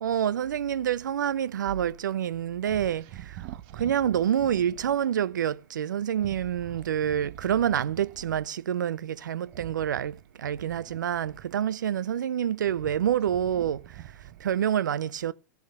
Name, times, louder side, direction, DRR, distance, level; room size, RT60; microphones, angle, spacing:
voice 1, 0.0-15.3, right 9 dB, 80° right, 0.6 m, -28 dB
sound 1, 2.6-5.0 6.1-8.5 9.5-11.8 12.3-14.7, right 13 dB, 50° right, 1.2 m, -45 dB
15.0 x 6.5 x 6.6 m
hypercardioid pair, 100°, 10 cm